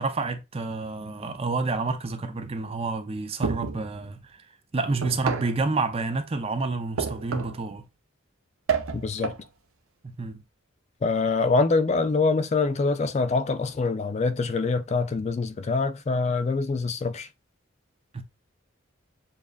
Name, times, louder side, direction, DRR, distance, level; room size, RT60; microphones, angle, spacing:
voice 1, 0.0-4.2 4.7-7.8 10.0-10.4 18.1-18.2, right 3 dB, 30° right, 0.5 m, -29 dB
sound 1, 3.4-3.9 5.0-5.6 7.0-7.6 8.7-9.5, right 5 dB, 85° right, 0.6 m, -29 dB
voice 2, 8.9-9.3 11.0-17.3, left 4 dB, 35° left, 0.3 m, -25 dB
7.1 x 2.4 x 2.3 m
head